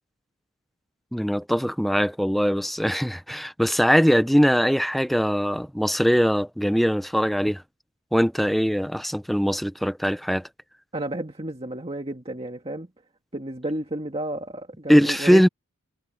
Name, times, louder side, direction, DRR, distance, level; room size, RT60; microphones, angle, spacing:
voice 1, 1.1-7.6 8.1-10.5 14.9-15.5, equal, ahead, 0.7 m, -21 dB
voice 2, 10.9-12.9 13.3-15.5, right 1 dB, 25° right, 1.9 m, -31 dB
head